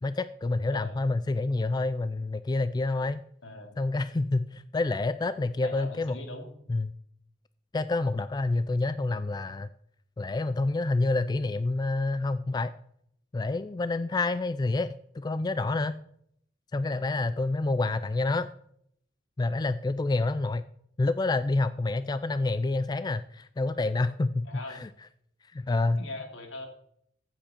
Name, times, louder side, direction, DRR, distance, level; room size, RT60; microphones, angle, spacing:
voice 1, 0.0-3.2 3.8-6.2 6.7-6.9 7.7-9.7 10.2-12.7 13.3-14.9 15.1-16.0 16.7-18.5 19.4-20.6 21.0-24.9 25.5-26.0, left 2 dB, 20° left, 13 dB, 0.3 m, -28 dB
voice 2, 3.4-3.8 5.6-6.5 24.4-24.9 25.9-26.7, left 2 dB, 75° left, 3 dB, 2.7 m, -41 dB
15.5 x 7.7 x 4.4 m, 0.71 s
head